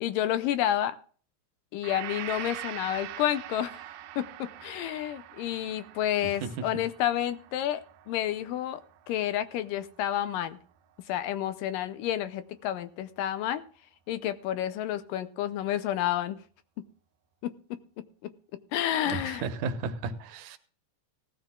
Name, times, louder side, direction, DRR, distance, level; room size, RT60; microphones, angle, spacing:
voice 1, 0.0-1.0 1.7-3.8 4.2-7.8 8.1-8.8 9.1-10.6 11.1-13.6 14.1-16.4 17.4-17.5 18.7-19.4, left 11 dB, 75° left, 12 dB, 2.2 m, -30 dB
Gong, 1.8-9.9, right 12 dB, 85° right, 2.7 m, -43 dB
voice 2, 6.2-6.7 19.1-20.6, right 5 dB, 65° right, 9 dB, 2.3 m, -34 dB
18.0 x 14.0 x 2.3 m, 0.44 s
omnidirectional pair, 4.2 m